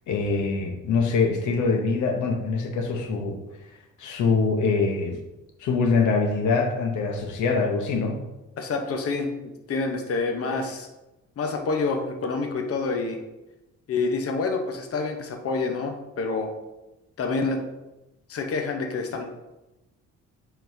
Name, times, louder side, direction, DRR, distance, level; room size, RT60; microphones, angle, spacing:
voice 1, 0.1-3.4 4.0-5.2 5.6-8.2, left 4 dB, 80° left, 3 dB, 0.9 m, -24 dB
voice 2, 8.6-9.3 9.7-10.9 11.4-13.2 13.9-16.5 17.2-17.6 18.3-19.3, left 4 dB, 50° left, 3 dB, 0.9 m, -27 dB
9.1 x 4.0 x 2.7 m, 1.0 s
cardioid pair, 90°, 30 cm